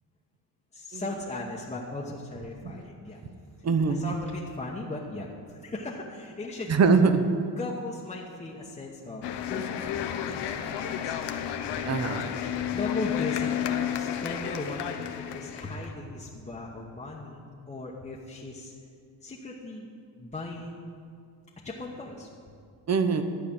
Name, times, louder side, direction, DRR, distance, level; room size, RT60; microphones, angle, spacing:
voice 1, 0.7-3.2 3.9-6.8 7.6-9.2 9.5-11.2 11.7-11.8 12.2-18.7 19.2-19.9 20.2-21.0 21.6-22.3, left 2 dB, 15° left, -4 dB, 1.0 m, -38 dB
voice 2, 3.6-4.0 6.7-7.2 11.8-12.4 22.9-23.2, right 5 dB, 40° right, 9 dB, 0.8 m, -23 dB
sound 1, 9.2-15.9, left 9 dB, 80° left, 0.8 m, -32 dB
12.5 x 5.0 x 8.7 m, 2.2 s
cardioid pair, 130°, 41 cm